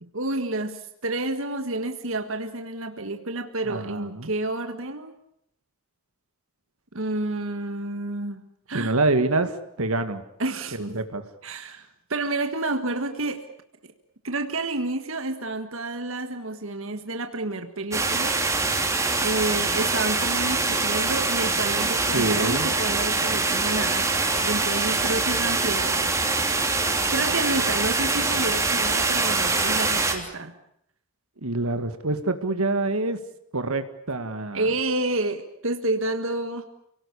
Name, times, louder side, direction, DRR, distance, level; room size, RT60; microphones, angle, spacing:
voice 1, 0.0-5.1 6.9-8.9 10.4-11.0 11.4-13.4 14.2-18.4 19.2-26.1 27.1-30.6 34.5-36.6, right 2 dB, 70° right, 7 dB, 1.7 m, -29 dB
voice 2, 3.7-4.3 8.7-10.2 10.7-11.2 22.1-22.7 31.4-33.2 33.5-34.7, right 2 dB, 90° right, 9 dB, 2.0 m, -26 dB
sound 1, 17.9-30.1, right 3 dB, 15° right, 3.2 m, -24 dB
29.0 x 18.5 x 8.4 m, 0.75 s
head